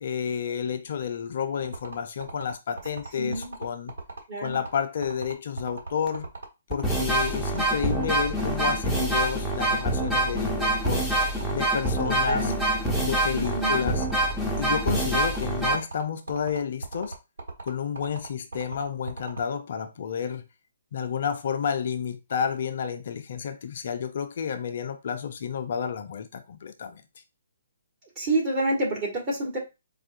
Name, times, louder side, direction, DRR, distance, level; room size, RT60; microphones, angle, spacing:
voice 1, 0.0-3.9 4.4-6.3 6.7-11.1 11.5-12.5 13.0-14.1 14.6-17.2 17.6-20.4 20.9-27.0, left 7 dB, 50° left, 0.4 m, -30 dB
sound 1, 1.6-19.4, right 3 dB, 65° right, 1.5 m, -37 dB
voice 2, 3.2-3.6 4.3-4.6 12.0-12.6 13.3-13.9 28.2-29.6, right 1 dB, 30° right, 1.7 m, -28 dB
sound 2, 6.1-6.2 6.7-15.8, right 1 dB, ahead, 0.7 m, -26 dB
4.4 x 2.3 x 2.6 m
figure-of-eight pair, 130°, 0 cm